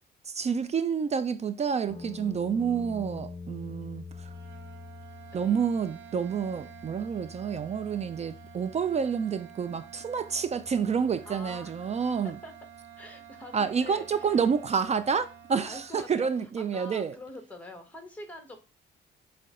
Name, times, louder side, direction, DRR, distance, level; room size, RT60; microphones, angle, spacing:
voice 1, 0.3-4.3 5.3-12.4 13.5-17.2, right 6 dB, 35° right, 0.4 m, -29 dB
sound 1, 1.9-15.9, left 4 dB, 25° left, 0.7 m, -48 dB
sound 2, 4.1-15.9, right 10 dB, 70° right, 0.8 m, -50 dB
voice 2, 11.2-12.5 13.0-14.5 15.7-16.3 16.7-18.6, left 1 dB, 5° left, 1.2 m, -45 dB
6.5 x 2.2 x 3.7 m
cardioid pair, 90°, 20 cm